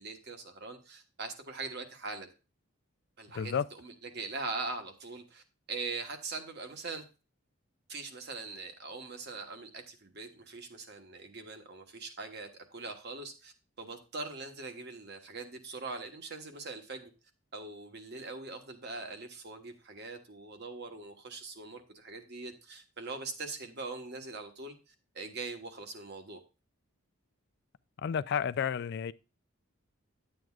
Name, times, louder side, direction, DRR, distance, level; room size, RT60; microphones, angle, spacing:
voice 1, 0.0-2.3 3.2-7.0 7.9-17.1 17.5-26.4, right 3 dB, 50° right, 1.2 m, -42 dB
voice 2, 3.3-3.6 28.0-29.1, left 7 dB, 50° left, 0.3 m, -31 dB
10.5 x 7.8 x 2.4 m
head